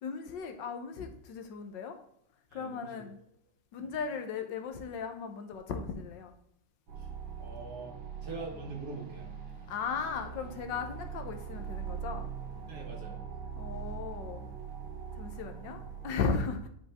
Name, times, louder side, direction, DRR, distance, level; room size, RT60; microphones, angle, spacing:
voice 1, 0.0-2.0 2.5-3.2 3.7-6.3 9.7-12.3 13.6-14.5 15.2-16.7, left 5 dB, 75° left, 6 dB, 1.5 m, -36 dB
voice 2, 2.5-3.1 3.8-3.9 7.0-7.1 7.4-8.0 8.2-9.3 12.7-13.2 13.7-14.0 16.5-16.6, right 3 dB, 55° right, 0 dB, 2.1 m, -43 dB
sound 1, 6.9-16.1, right 7 dB, 85° right, 2.4 m, -42 dB
9.2 x 5.2 x 3.5 m, 0.71 s
omnidirectional pair, 2.1 m